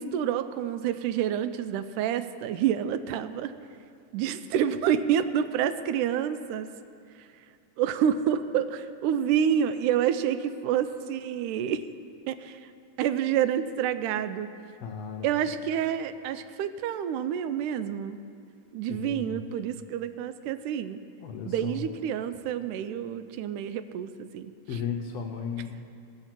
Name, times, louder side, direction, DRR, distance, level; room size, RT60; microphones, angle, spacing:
voice 1, 0.0-3.5 4.1-6.7 7.8-11.8 12.3-12.6 13.0-14.5 15.2-18.2 18.7-21.0 21.5-24.5, right 9 dB, 85° right, 12 dB, 2.1 m, -28 dB
voice 2, 14.8-15.3 18.9-19.4 21.2-21.8 24.7-26.0, left 6 dB, 75° left, 3 dB, 1.6 m, -35 dB
17.5 x 6.7 x 5.9 m, 2.4 s
omnidirectional pair, 3.5 m